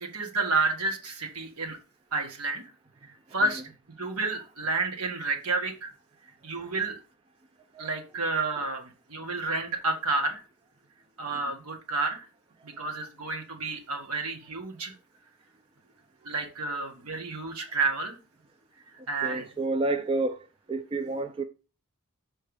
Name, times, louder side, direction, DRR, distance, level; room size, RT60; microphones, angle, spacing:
voice 1, 0.0-1.8 2.1-2.6 3.0-3.6 4.0-5.9 6.4-7.0 7.8-10.4 11.2-12.2 12.6-14.9 16.2-18.1 19.1-19.4, right 3 dB, 80° right, 1.6 m, -30 dB
voice 2, 19.2-20.4 20.7-21.4, right 2 dB, 25° right, 0.4 m, -29 dB
6.3 x 4.4 x 4.8 m
head